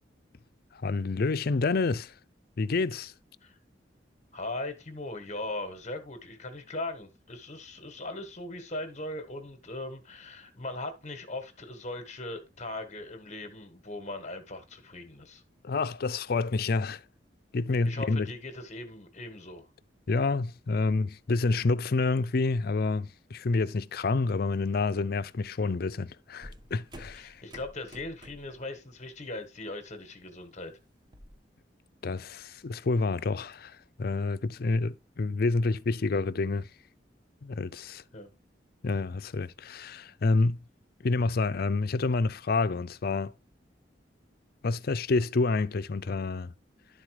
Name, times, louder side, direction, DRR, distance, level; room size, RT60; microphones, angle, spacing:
voice 1, 0.7-2.1 2.6-3.1 15.6-17.0 17.5-18.3 20.1-27.4 32.0-36.7 37.4-38.0 38.8-40.6 41.0-43.3 44.6-46.5, left 3 dB, 55° left, 0.5 m, -28 dB
voice 2, 4.3-15.4 17.8-19.7 27.2-30.7 38.1-38.3, left 2 dB, 40° left, 1.4 m, -39 dB
sound 1, 26.4-28.6 29.0-29.3 29.7-31.4, equal, 25° right, 0.9 m, -50 dB
11.5 x 4.1 x 4.8 m
head